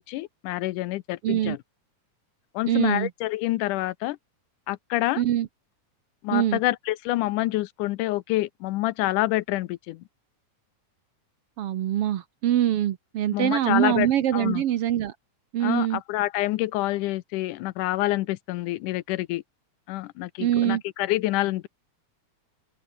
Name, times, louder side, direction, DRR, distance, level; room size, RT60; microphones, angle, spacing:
voice 1, 0.1-1.6 2.6-4.2 4.7-5.2 6.2-10.0 13.3-14.1 14.3-14.6 15.6-19.4 19.9-21.7, left 17 dB, 80° left, 2.2 m, -27 dB
voice 2, 1.2-1.6 2.7-3.1 5.2-5.5 6.3-6.6 11.6-15.1 15.5-16.0 20.4-20.8, right 11 dB, 65° right, 1.5 m, -24 dB
open air
omnidirectional pair, 3.7 m